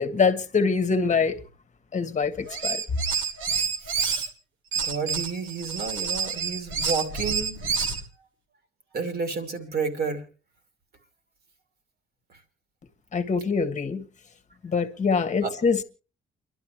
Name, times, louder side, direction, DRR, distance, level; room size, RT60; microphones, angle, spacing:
voice 1, 0.0-1.4 1.9-2.8 13.1-14.0 14.6-15.8, left 5 dB, 35° left, 1.4 m, -24 dB
sound 1, 2.5-4.3 4.7-8.0, right 6 dB, 80° right, 1.8 m, -28 dB
voice 2, 3.9-4.3 4.8-7.6 8.9-10.2 15.4-15.5, right 4 dB, 55° right, 2.7 m, -31 dB
29.5 x 12.0 x 3.1 m
cardioid pair, 90°, 20 cm